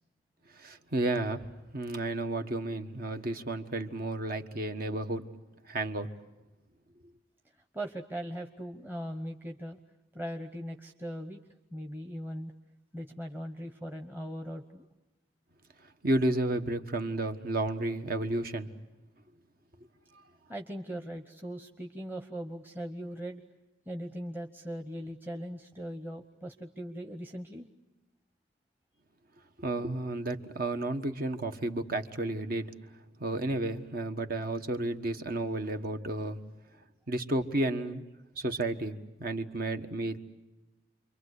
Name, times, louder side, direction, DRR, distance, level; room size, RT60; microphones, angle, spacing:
voice 1, 0.5-1.4 1.7-5.2 5.7-6.1 16.0-18.7 29.6-32.7 33.2-36.4 37.1-38.1 38.4-40.2, right 2 dB, 55° right, 7 dB, 1.4 m, -32 dB
voice 2, 7.7-9.8 10.1-11.4 11.7-12.5 12.9-14.8 20.5-23.4 23.9-27.7, equal, 10° right, 4 dB, 1.1 m, -39 dB
29.0 x 23.5 x 8.2 m, 1.0 s
head